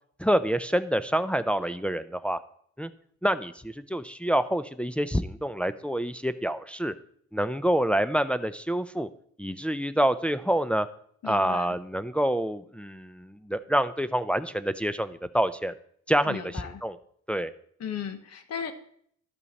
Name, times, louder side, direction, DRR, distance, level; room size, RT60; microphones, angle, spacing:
voice 1, 0.2-2.4 2.8-2.9 3.2-6.9 7.3-9.1 9.4-10.9 11.2-15.7 16.1-17.0 17.3-17.5, right 1 dB, 5° left, 10 dB, 0.4 m, -27 dB
voice 2, 11.2-11.8 16.3-16.8 17.8-18.7, left 7 dB, 55° left, 9 dB, 1.1 m, -36 dB
12.0 x 5.4 x 4.1 m, 0.64 s
cardioid pair, 90°, 30 cm